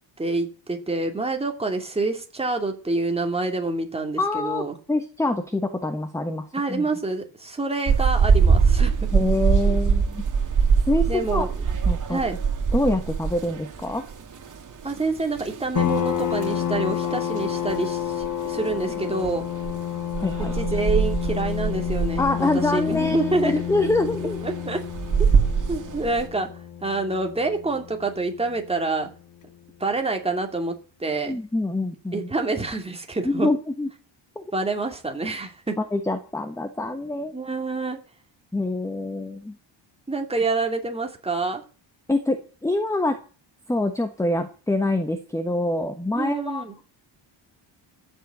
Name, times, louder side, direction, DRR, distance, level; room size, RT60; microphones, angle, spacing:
voice 1, 0.2-4.7 6.5-9.1 11.1-11.5 12.1-12.4 14.8-19.4 20.4-23.5 24.4-24.8 25.7-26.5 26.8-29.1 29.8-30.7 31.0-31.4 32.1-33.5 34.5-35.8 37.3-38.0 40.1-41.6 46.1-46.7, right 3 dB, 15° right, 3 dB, 2.6 m, -27 dB
voice 2, 4.2-6.9 9.1-10.2 10.9-11.5 11.9-12.2 12.7-14.0 20.2-20.5 22.2-24.4 31.3-32.3 33.2-33.9 34.4-34.5 35.8-37.3 38.5-39.6 42.1-43.2 43.7-46.7, left 2 dB, 5° left, 8 dB, 1.1 m, -25 dB
sound 1, 7.9-26.3, right 6 dB, 40° right, 2.9 m, -24 dB
sound 2, 15.8-29.0, left 10 dB, 40° left, 1.0 m, -30 dB
15.0 x 7.8 x 8.0 m, 0.37 s
wide cardioid pair, 165°, 46 cm